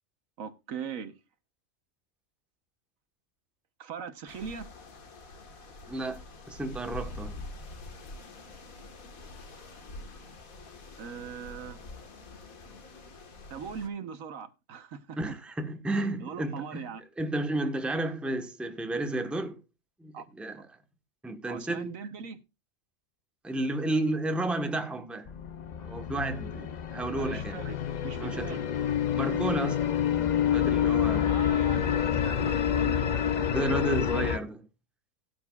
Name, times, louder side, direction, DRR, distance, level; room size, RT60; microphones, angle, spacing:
voice 1, 0.4-1.2 3.8-4.7 11.0-11.9 13.5-15.2 15.9-17.0 20.1-20.3 21.5-22.4 27.1-28.7 31.3-33.6, right 7 dB, 75° right, 1.4 m, -40 dB
sound 1, 4.3-13.9, left 2 dB, 80° left, 2.0 m, -45 dB
voice 2, 5.9-6.2 6.5-7.4 15.2-16.8 17.2-19.6 20.0-20.6 21.2-21.9 23.4-25.3 25.8-27.6 28.2-28.6 29.1-29.8 30.5-31.3 32.4-32.5 33.5-34.6, right 2 dB, ahead, 1.0 m, -32 dB
sound 2, 25.3-34.4, left 9 dB, 55° left, 0.5 m, -28 dB
17.0 x 9.0 x 2.4 m
omnidirectional pair, 1.4 m